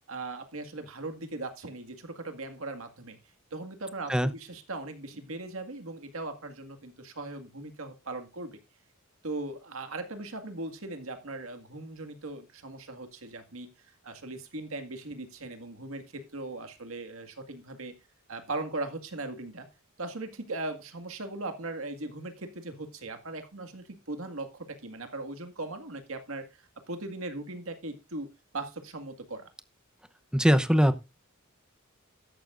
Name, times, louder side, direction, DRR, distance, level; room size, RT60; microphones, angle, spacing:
voice 1, 0.1-3.2 3.5-8.6 9.2-13.7 14.0-17.9 18.3-19.7 20.0-28.3 28.5-29.5, right 2 dB, 80° right, 7 dB, 2.0 m, -39 dB
voice 2, 30.3-31.0, equal, 5° right, 11 dB, 0.8 m, -21 dB
13.5 x 11.5 x 2.6 m, 0.26 s
head